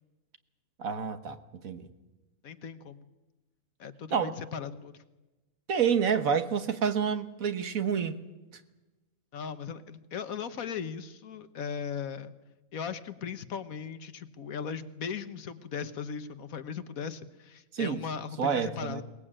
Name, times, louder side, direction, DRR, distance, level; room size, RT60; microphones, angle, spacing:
voice 1, 0.8-1.4 1.6-1.9 4.1-4.4 5.7-8.2 17.7-18.0 18.4-19.0, right 7 dB, 70° right, 1.7 m, -28 dB
voice 2, 2.4-3.0 3.8-4.9 9.3-12.3 12.7-19.0, left 6 dB, 75° left, 1.5 m, -38 dB
22.0 x 19.5 x 8.8 m
omnidirectional pair, 1.5 m